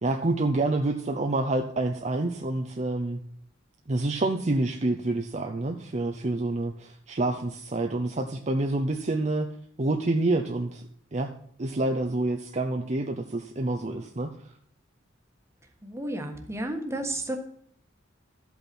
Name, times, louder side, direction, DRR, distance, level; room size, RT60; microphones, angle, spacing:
voice 1, 0.0-3.2 3.9-9.5 9.8-10.8 11.1-11.3 11.6-14.3, right 2 dB, 35° right, 4 dB, 0.7 m, -27 dB
voice 2, 15.8-17.4, right 1 dB, 15° right, 4 dB, 1.4 m, -32 dB
12.5 x 8.2 x 4.3 m, 0.66 s
head